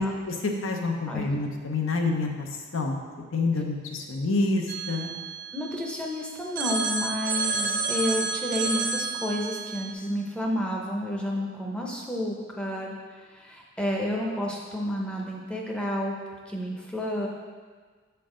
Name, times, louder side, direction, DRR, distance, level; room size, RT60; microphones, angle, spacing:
voice 1, 0.0-3.0 3.3-5.1, left 3 dB, 75° left, 2 dB, 0.7 m, -28 dB
Telephone, 4.7-6.1 6.6-9.9, right 4 dB, 45° right, 0.6 m, -30 dB
voice 2, 5.5-16.1 16.5-17.3, left 1 dB, 5° left, -1 dB, 0.6 m, -30 dB
7.2 x 4.5 x 3.8 m, 1.5 s
head